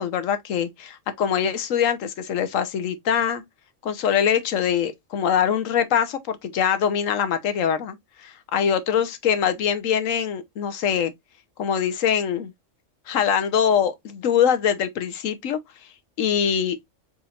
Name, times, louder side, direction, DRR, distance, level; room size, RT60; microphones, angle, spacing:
voice 1, 0.0-3.4 3.8-11.1 11.6-12.5 13.1-15.6 16.2-16.8, left 8 dB, 85° left, 1.2 m, -23 dB
4.4 x 4.2 x 2.4 m
omnidirectional pair, 1.3 m